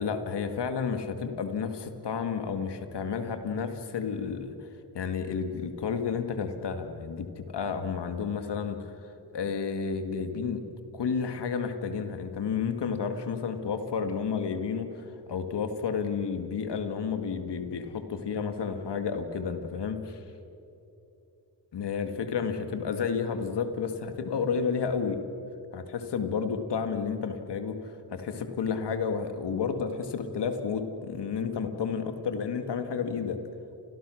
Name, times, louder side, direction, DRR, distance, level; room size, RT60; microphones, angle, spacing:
voice 1, 0.0-4.5 4.9-8.9 9.3-10.6 10.9-20.2 21.7-25.2 25.7-27.8 28.1-33.4, left 6 dB, 85° left, 7 dB, 2.1 m, -31 dB
30.0 x 25.0 x 6.4 m, 2.9 s
cardioid pair, 60°, 40 cm